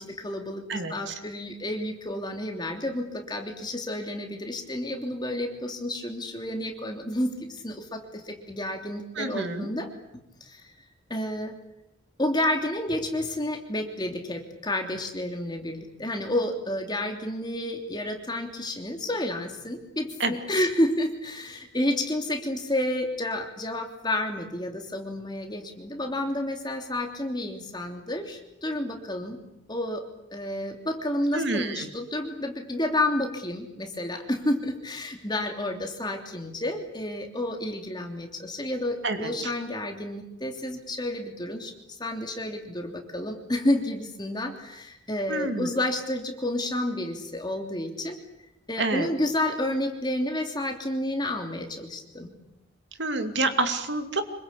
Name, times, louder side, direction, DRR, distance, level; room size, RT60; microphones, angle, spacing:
voice 1, 0.0-9.9 10.4-10.7 11.1-11.6 12.2-29.4 29.7-30.0 30.3-41.7 42.0-48.2 48.7-52.3, left 1 dB, 20° left, 3 dB, 3.1 m, -30 dB
voice 2, 0.7-1.1 9.2-9.7 20.2-20.3 31.3-31.9 39.0-39.5 45.3-45.7 48.8-49.1 53.0-54.2, right 2 dB, 60° right, 7 dB, 2.6 m, -28 dB
26.5 x 22.5 x 8.5 m, 0.85 s
head